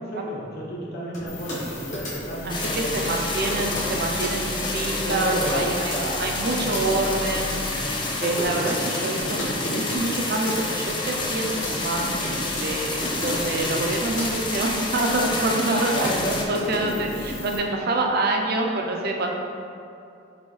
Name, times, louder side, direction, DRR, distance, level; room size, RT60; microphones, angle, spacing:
voice 1, 0.0-3.0 5.0-5.6 5.9-6.3 6.6-7.2 8.5-8.6 15.9-17.4, right 1 dB, 60° left, -5 dB, 0.8 m, -32 dB
sound 1, 1.1-1.6 1.9-2.4 2.6-2.8 3.5-3.9 4.2-4.4 4.6-5.6 5.9-6.0 6.3-10.0 10.5-10.7 11.1-12.7 13.0-13.9 14.2-14.3 14.8-15.6 16.0-17.3, equal, 40° left, 1.3 m, -33 dB
sound 2, 1.3-17.6, left 1 dB, 90° left, 1.0 m, -40 dB
voice 2, 2.4-7.6 8.2-16.1 16.5-19.3, right 2 dB, 55° right, 1 dB, 0.5 m, -26 dB
sound 3, 2.5-16.4, left 2 dB, 25° left, 0.5 m, -29 dB
6.0 x 2.7 x 3.1 m, 2.6 s
head